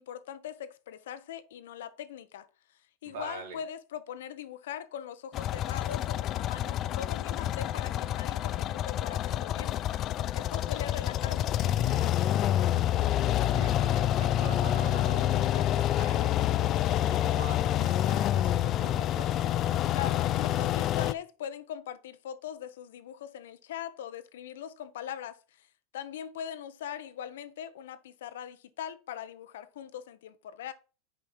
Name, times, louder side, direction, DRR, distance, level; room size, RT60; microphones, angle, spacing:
voice 1, 0.0-2.5 3.0-9.8 10.3-12.5 19.9-25.7 25.9-30.7, left 9 dB, 85° left, 0.8 m, -41 dB
voice 2, 3.0-3.6 13.3-16.7 17.1-19.3, right 4 dB, 80° right, 2.8 m, -44 dB
sound 1, 5.3-21.1, left 12 dB, 35° left, 0.3 m, -28 dB
5.7 x 5.2 x 4.4 m
supercardioid pair, 135°, 0 cm